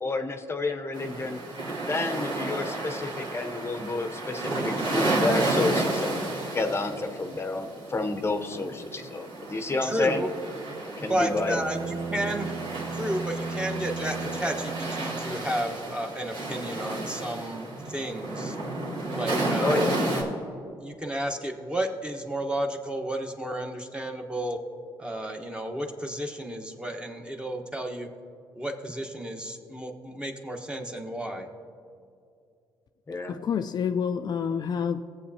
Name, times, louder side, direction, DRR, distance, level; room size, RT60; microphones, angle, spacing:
voice 1, 0.0-1.4 1.8-6.2 6.5-10.2 11.0-11.6 19.6-20.0 33.1-33.4, left 3 dB, 30° left, 6 dB, 0.7 m, -30 dB
sound 1, 0.9-20.2, right 2 dB, 80° right, 2.7 m, -32 dB
voice 2, 9.8-10.3 11.1-12.5 12.9-18.6 19.1-20.3 20.8-24.6 25.0-28.1 28.6-31.5, right 1 dB, 10° right, 3 dB, 1.1 m, -32 dB
Bowed string instrument, 11.3-15.7, right 4 dB, 50° right, 0.4 m, -36 dB
voice 3, 33.3-35.0, left 7 dB, 50° left, 8 dB, 0.3 m, -28 dB
16.5 x 7.8 x 2.8 m, 2.4 s
cardioid pair, 75°, 9 cm